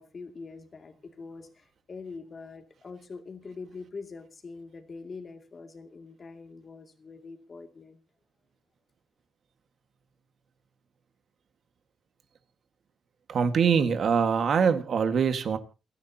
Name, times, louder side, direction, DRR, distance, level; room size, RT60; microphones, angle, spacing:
voice 1, 0.0-8.0, left 4 dB, 35° left, 2.5 m, -44 dB
voice 2, 13.3-15.6, right 6 dB, 55° right, 1.7 m, -23 dB
29.0 x 10.0 x 2.9 m
cardioid pair, 120°, 0 cm